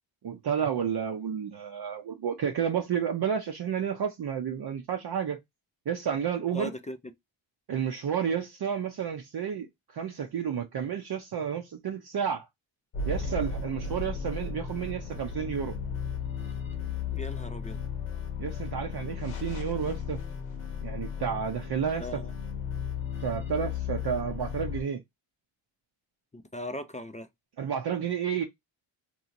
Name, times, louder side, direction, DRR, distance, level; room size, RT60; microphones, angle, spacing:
voice 1, 0.2-5.4 5.9-6.7 7.7-12.5 13.1-15.8 18.4-20.2 20.8-22.2 23.2-25.0 27.6-28.4, right 7 dB, 50° right, 0.6 m, -31 dB
voice 2, 6.5-7.0 17.1-17.8 22.0-22.3 26.3-27.3, left 1 dB, 15° left, 0.4 m, -38 dB
sound 1, 12.9-24.8, left 6 dB, 90° left, 1.1 m, -35 dB
2.9 x 2.7 x 2.5 m
cardioid pair, 65°, 50 cm